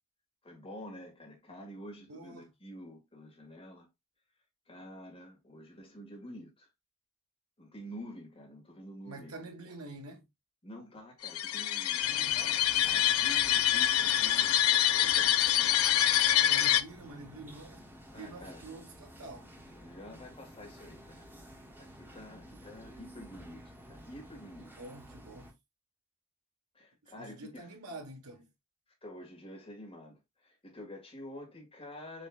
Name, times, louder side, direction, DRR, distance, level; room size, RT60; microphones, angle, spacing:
voice 1, 0.4-3.9 4.7-6.7 7.6-9.7 10.6-12.1 12.4-12.5 12.8-15.7 18.1-18.7 19.7-21.3 21.8-24.8 26.7-27.8 29.0-32.3, equal, 25° left, 1.9 m, -48 dB
voice 2, 2.1-2.5 9.0-10.3 12.0-12.6 16.5-17.8 18.2-19.6 24.6-25.5 27.1-28.5, right 2 dB, 80° right, 1.3 m, -47 dB
sound 1, 11.2-16.8, left 12 dB, 70° left, 0.5 m, -26 dB
sound 2, 12.0-25.5, equal, 10° right, 1.0 m, -52 dB
6.5 x 3.1 x 2.4 m
head